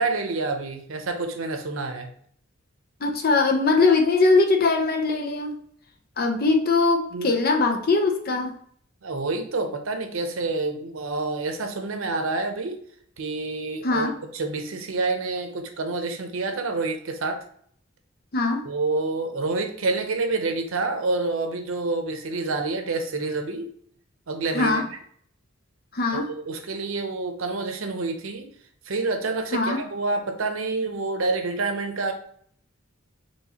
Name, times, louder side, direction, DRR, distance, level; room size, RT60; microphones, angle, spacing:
voice 1, 0.0-2.1 7.1-7.3 9.0-12.8 13.2-17.4 18.6-23.7 24.3-25.0 26.1-28.5 28.9-32.1, right 3 dB, 85° right, 6 dB, 0.7 m, -28 dB
voice 2, 3.0-5.6 6.2-8.5 13.8-14.1 18.3-18.7 24.5-24.8 25.9-26.3 29.5-29.8, left 3 dB, 50° left, 4 dB, 0.7 m, -21 dB
4.5 x 3.1 x 2.9 m, 0.62 s
head